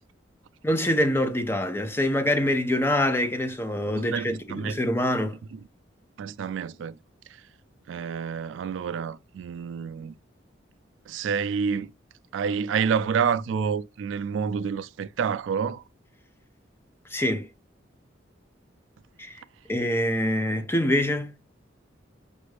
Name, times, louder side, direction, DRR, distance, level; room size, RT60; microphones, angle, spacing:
voice 1, 0.6-5.4 17.1-17.5 19.2-19.4 19.7-21.3, left 1 dB, 10° left, 0.5 m, -25 dB
voice 2, 4.0-4.8 5.5-5.6 6.2-7.0 7.3-7.4 7.9-10.1 11.1-11.9 12.3-15.8, right 6 dB, 80° right, 0.3 m, -28 dB
5.2 x 2.5 x 3.2 m
head